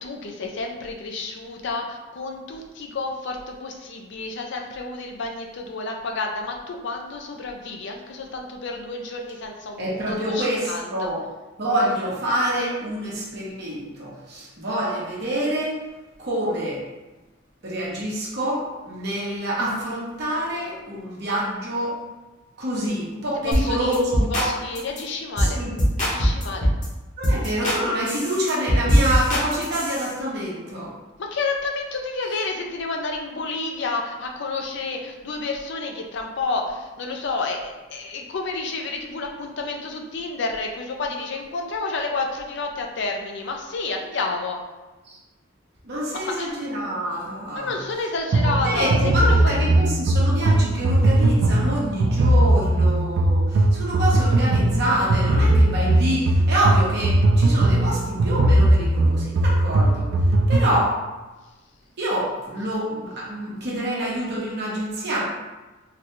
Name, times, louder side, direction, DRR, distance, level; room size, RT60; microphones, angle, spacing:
voice 1, 0.0-11.1 23.4-24.0 24.3-25.6 26.0-26.7 31.2-44.6 46.2-46.5 47.5-49.6, left 3 dB, 65° left, 2 dB, 0.5 m, -30 dB
voice 2, 9.8-11.2 11.6-15.8 16.2-16.8 17.6-22.0 22.6-24.5 25.4-25.7 27.2-30.9 45.0-45.2 45.8-47.8 48.4-60.1 60.5-60.9 62.0-65.2, right 1 dB, 55° right, -5 dB, 0.9 m, -26 dB
sound 1, 23.5-23.7 23.9-24.5 24.8-25.0 25.4-25.5 25.8-26.9 27.2-27.8 28.1-30.1, equal, 40° left, 1.1 m, -21 dB
sound 2, 48.3-60.8, right 1 dB, 90° right, 0.4 m, -19 dB
3.8 x 2.3 x 3.0 m, 1.1 s
head